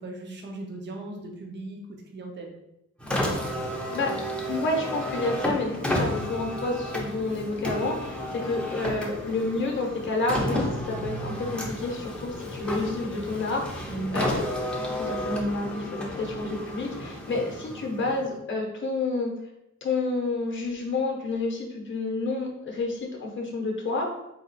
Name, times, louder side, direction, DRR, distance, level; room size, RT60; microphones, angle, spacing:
voice 1, 0.0-1.8 2.1-2.5 13.9-14.3, right 2 dB, 40° right, 1 dB, 0.6 m, -37 dB
Car, 3.0-18.4, equal, 5° left, 0.5 m, -32 dB
voice 2, 3.7-4.1 4.5-14.4 14.8-19.3 19.8-24.1, left 3 dB, 40° left, 1 dB, 0.7 m, -29 dB
4.1 x 2.3 x 3.9 m, 0.88 s
wide cardioid pair, 180°, 29 cm